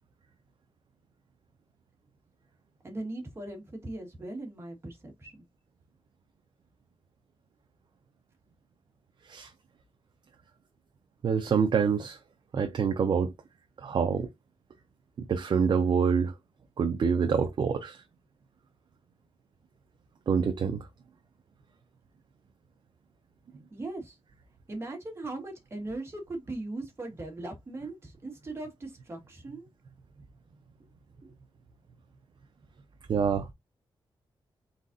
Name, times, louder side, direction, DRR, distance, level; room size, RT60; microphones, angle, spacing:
voice 1, 2.8-5.4 23.7-24.2 24.7-29.7 31.2-31.3, right 2 dB, 25° right, 1.5 m, -39 dB
voice 2, 11.2-12.2 12.5-13.3 13.8-14.3 15.2-16.3 16.8-18.0 20.3-20.8 33.1-33.5, right 6 dB, 50° right, 0.6 m, -26 dB
4.0 x 4.0 x 2.5 m
wide cardioid pair, 175°, 10 cm